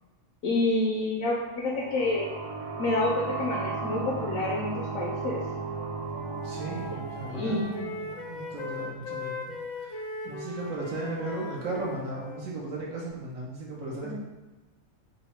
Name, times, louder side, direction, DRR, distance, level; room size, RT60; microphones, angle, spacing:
voice 1, 0.4-2.3 2.8-5.5 7.3-7.7 14.0-14.1, left 2 dB, 80° left, -3 dB, 1.1 m, -28 dB
sound 1, 1.3-8.8, right 4 dB, 55° right, 0.6 m, -36 dB
Wind instrument woodwind instrument, 5.7-12.5, left 3 dB, 50° left, 0.6 m, -40 dB
voice 2, 6.4-14.1, right 2 dB, 90° right, -4 dB, 1.3 m, -36 dB
3.7 x 2.1 x 4.4 m, 1.2 s
omnidirectional pair, 1.4 m